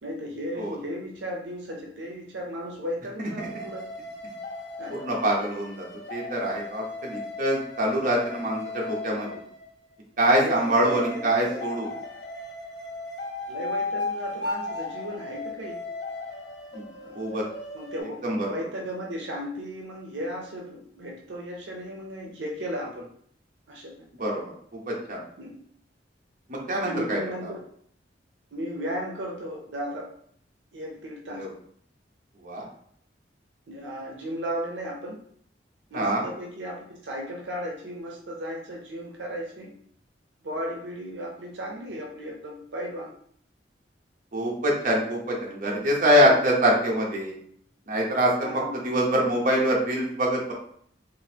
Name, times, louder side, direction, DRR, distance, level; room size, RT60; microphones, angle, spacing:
voice 1, 0.0-3.8 4.8-5.0 10.4-11.7 13.5-15.8 16.9-17.2 17.7-23.1 23.7-23.9 25.4-25.6 26.8-27.6 28.5-30.1 30.7-31.4 33.7-35.2 35.9-39.7 40.4-43.1 46.3-46.4 48.4-48.8, equal, 80° right, -1 dB, 0.6 m, -35 dB
sound 1, 3.4-9.7 10.3-18.0, left 2 dB, 70° left, 0.8 m, -36 dB
voice 2, 4.9-5.8 6.1-9.3 10.2-11.9 16.7-16.9 17.1-17.4 18.2-18.5 24.2-24.4 24.7-25.2 26.5-27.5 31.4-31.5 32.4-32.7 35.9-36.2 44.3-47.4 47.9-48.5 48.8-50.5, equal, 50° right, -2 dB, 0.9 m, -24 dB
3.8 x 2.5 x 2.8 m, 0.64 s
head